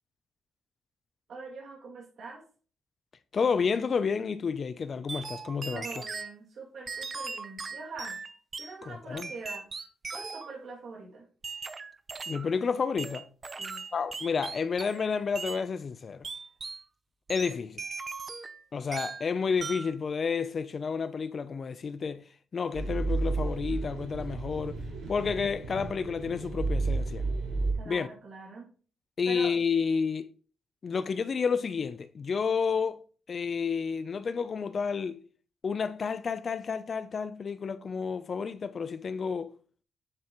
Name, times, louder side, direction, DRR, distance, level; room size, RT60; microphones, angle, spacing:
voice 1, 1.3-2.4 5.7-8.2 8.6-9.6 10.1-11.3 13.6-13.8 27.7-28.7 29.3-29.5, right 4 dB, 60° right, 2.4 m, -43 dB
voice 2, 3.3-6.0 8.8-9.3 12.3-13.3 13.9-16.3 17.3-17.8 18.7-22.2 22.5-24.8 25.1-27.3 27.9-28.1 29.2-30.3 30.8-35.2 35.6-39.5, left 5 dB, 40° left, 0.5 m, -30 dB
sound 1, 5.1-6.3 6.9-8.7 9.2-10.6 11.4-12.5 13.0-15.1 15.4-15.6 16.2-16.8 17.3-18.6 18.9-19.3 19.6-20.0, right 4 dB, 35° right, 0.7 m, -39 dB
sound 2, 22.7-27.7, right 3 dB, 90° right, 4.1 m, -32 dB
9.9 x 6.8 x 3.0 m
cardioid pair, 110°, 0 cm